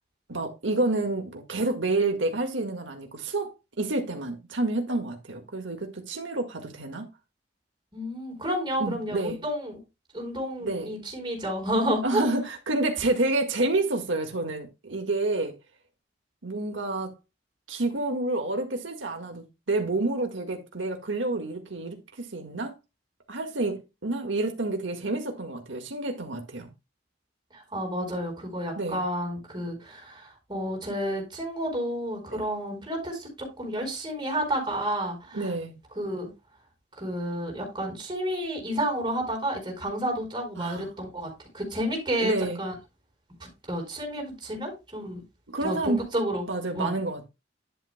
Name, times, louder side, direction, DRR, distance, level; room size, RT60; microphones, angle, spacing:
voice 1, 0.3-3.5 3.8-7.1 8.8-9.4 10.6-10.9 12.0-15.6 16.4-17.1 17.7-22.7 23.3-26.7 28.7-29.0 32.3-32.4 35.3-35.7 40.6-40.9 42.2-42.6 45.5-46.0 46.5-47.2, right 2 dB, 85° right, 1.8 m, -29 dB
voice 2, 7.9-9.8 10.1-12.3 27.5-35.4 36.0-36.3 37.0-41.3 41.5-42.7 43.4-45.2 45.6-46.5 46.7-46.9, equal, 25° right, 4.5 m, -30 dB
11.0 x 8.2 x 2.2 m
head